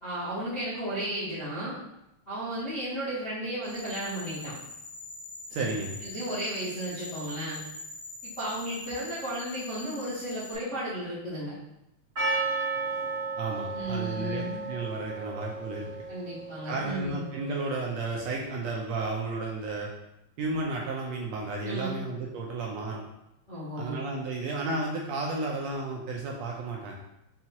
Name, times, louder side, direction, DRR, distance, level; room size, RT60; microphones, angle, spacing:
voice 1, 0.0-1.8 2.3-4.5 5.5-5.6 6.0-7.6 8.2-11.5 13.7-14.6 16.1-17.2 21.6-22.0 23.5-24.0, right 1 dB, 50° left, -12 dB, 0.9 m, -34 dB
sound 1, 3.6-10.6, left 3 dB, 75° left, 1.9 m, -43 dB
voice 2, 5.5-6.0 13.4-15.9 16.7-19.9 20.4-23.0 23.8-26.9, right 3 dB, 80° right, -2 dB, 1.6 m, -33 dB
Percussion, 12.2-17.1, right 3 dB, 45° right, 0.8 m, -33 dB
5.7 x 2.4 x 2.8 m, 0.86 s
omnidirectional pair, 3.3 m